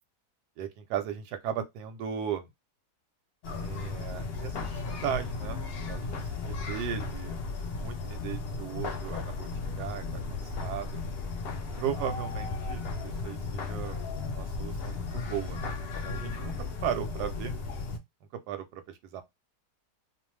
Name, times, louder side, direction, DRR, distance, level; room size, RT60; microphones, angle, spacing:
voice 1, 0.6-2.5 3.5-5.6 5.8-7.3 7.8-9.5 9.8-11.0 11.8-13.9 14.2-15.6 16.0-16.5 16.8-17.5 18.3-19.2, right 9 dB, 90° right, 1.2 m, -36 dB
sound 1, 3.4-18.0, left 3 dB, 80° left, 0.5 m, -35 dB
2.5 x 2.3 x 3.0 m
omnidirectional pair, 1.7 m